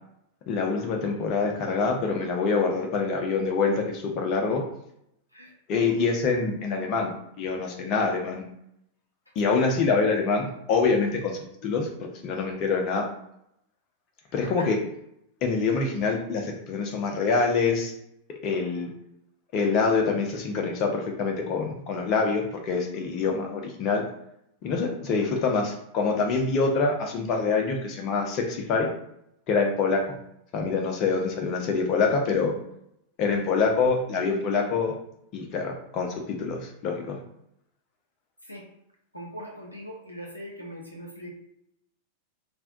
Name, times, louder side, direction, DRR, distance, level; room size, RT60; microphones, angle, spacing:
voice 1, 0.5-4.6 5.7-8.4 9.4-13.0 14.3-14.8 15.4-17.9 18.4-18.9 19.5-24.0 24.6-28.9 29.5-30.2 30.5-32.5 33.2-34.9 35.3-37.2, left 4 dB, 40° left, 2 dB, 0.7 m, -25 dB
voice 2, 39.1-41.3, equal, 85° left, -2 dB, 0.7 m, -40 dB
2.5 x 2.2 x 3.7 m, 0.76 s
figure-of-eight pair, 90°, 0 cm